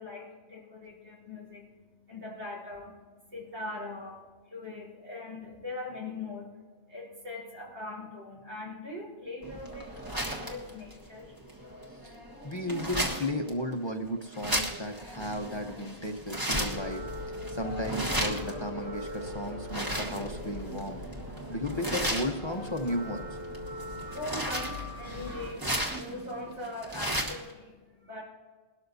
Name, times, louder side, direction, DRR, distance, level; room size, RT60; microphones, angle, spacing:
voice 1, 0.0-11.4 23.8-28.2, left 2 dB, 85° right, -3 dB, 4.5 m, -41 dB
sound 1, 9.4-27.5, right 1 dB, 20° right, 1.4 m, -36 dB
voice 2, 11.9-12.2 12.4-21.0 21.5-23.4, left 1 dB, 30° left, 4 dB, 0.8 m, -34 dB
sound 2, 16.6-25.5, left 1 dB, 55° right, 2.2 m, -40 dB
21.0 x 12.5 x 2.7 m, 1.5 s
omnidirectional pair, 1.1 m